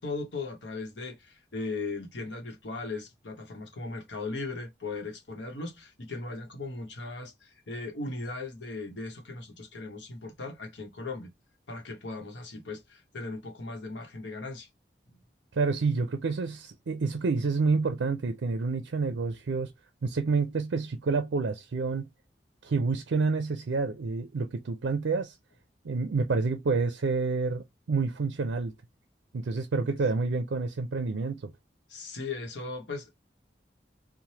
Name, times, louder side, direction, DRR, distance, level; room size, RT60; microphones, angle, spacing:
voice 1, 0.0-11.3 11.7-14.7 31.9-33.2, left 3 dB, 85° left, 0.9 m, -38 dB
voice 2, 15.5-19.7 20.0-22.1 22.6-25.3 25.8-28.7 29.3-31.5, right 4 dB, 85° right, 0.4 m, -28 dB
3.2 x 2.1 x 2.7 m
head